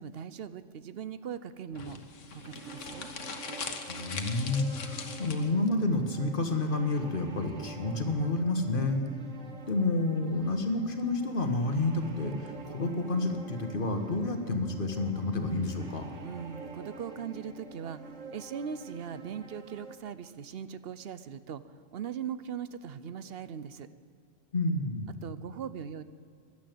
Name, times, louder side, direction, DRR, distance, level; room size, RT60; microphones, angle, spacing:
voice 1, 0.0-2.0 2.3-3.1 16.2-23.9 25.2-26.0, right 8 dB, 60° right, 13 dB, 0.8 m, -40 dB
sound 1, 1.7-5.7, left 5 dB, 80° left, 1.5 m, -41 dB
sound 2, 2.3-20.0, right 3 dB, 85° right, 1.7 m, -47 dB
voice 2, 3.9-9.0 9.7-16.0 24.5-25.1, left 2 dB, 45° left, 6 dB, 1.6 m, -29 dB
16.0 x 11.5 x 7.8 m, 2.1 s
omnidirectional pair, 1.3 m